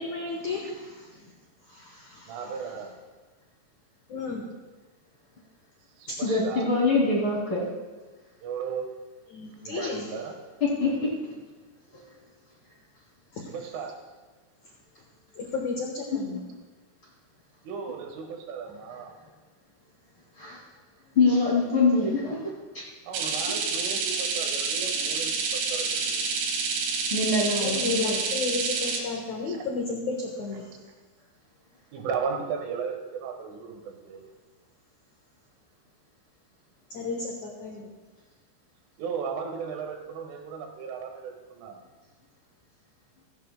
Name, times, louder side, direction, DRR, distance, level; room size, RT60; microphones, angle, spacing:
voice 1, 0.0-1.3 1.6-2.8 4.1-4.5 6.1-6.2 9.3-10.2 13.3-13.7 14.6-14.7 15.3-16.4 27.5-30.7 36.9-37.9, left 4 dB, 80° left, -1 dB, 1.7 m, -33 dB
voice 2, 2.3-3.0 6.0-6.7 8.4-8.9 9.6-10.4 13.5-14.0 17.7-19.2 23.1-26.2 29.5-29.6 31.9-34.2 39.0-41.8, right 6 dB, 85° right, 3 dB, 3.9 m, -35 dB
voice 3, 6.2-7.7 9.8-9.9 10.6-10.9 11.9-12.0 20.4-20.6 21.2-22.4 27.1-28.2, left 3 dB, 40° left, -5 dB, 2.1 m, -24 dB
sound 1, 23.1-29.0, right 5 dB, 70° right, 3.1 m, -28 dB
16.5 x 16.0 x 2.2 m, 1.3 s
omnidirectional pair, 5.4 m